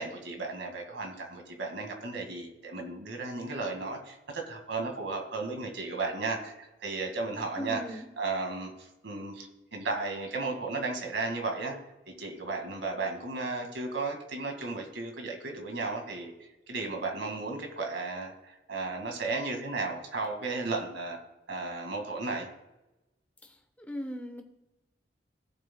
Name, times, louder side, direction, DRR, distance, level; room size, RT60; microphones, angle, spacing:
voice 1, 0.0-11.8 12.2-21.2 21.5-22.5, right 3 dB, 85° right, 2 dB, 2.0 m, -34 dB
voice 2, 7.6-8.1 23.9-24.4, equal, 10° left, 4 dB, 1.0 m, -37 dB
16.5 x 7.3 x 2.3 m, 0.95 s
head